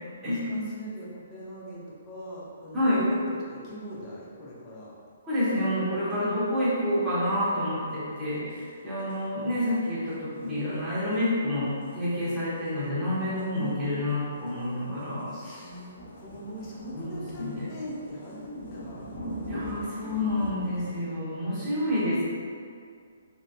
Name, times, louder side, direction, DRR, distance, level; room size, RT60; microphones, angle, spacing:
voice 1, 0.5-3.2 3.5-4.9 13.5-13.8 15.3-19.2 21.5-22.2, right 1 dB, 25° left, -6 dB, 0.8 m, -41 dB
voice 2, 5.2-15.6 17.0-17.7 19.5-22.2, left 1 dB, 10° right, -12 dB, 1.4 m, -28 dB
sound 1, 6.1-6.2 7.9-8.0 8.2-8.3 8.5-8.6 9.0-9.2 9.5-10.1 10.4-10.7 11.0-11.2 11.8-21.0, equal, 55° left, 1.0 m, -42 dB
5.0 x 2.9 x 2.3 m, 2.2 s
figure-of-eight pair, 125°, 0 cm